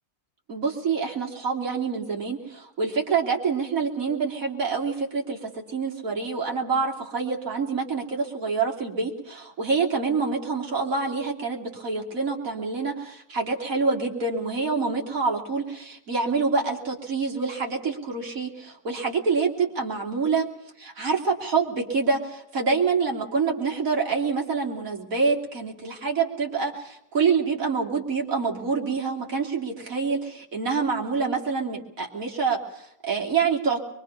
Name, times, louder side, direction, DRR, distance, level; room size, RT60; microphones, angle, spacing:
voice 1, 0.5-20.5 20.8-33.8, right 4 dB, 55° right, -1 dB, 3.4 m, -26 dB
23.5 x 23.5 x 5.7 m, 0.75 s
omnidirectional pair, 1.8 m